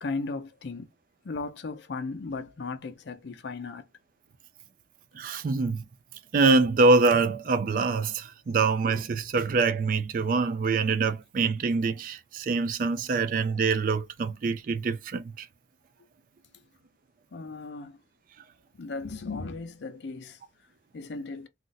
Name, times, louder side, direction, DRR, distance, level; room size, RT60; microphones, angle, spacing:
voice 1, 0.0-0.9 1.2-3.8 17.3-18.0 18.8-20.4 20.9-21.5, left 3 dB, 75° left, 0.5 m, -36 dB
voice 2, 5.1-5.8 6.3-15.5, right 4 dB, 45° right, 0.3 m, -25 dB
2.5 x 2.0 x 3.9 m
head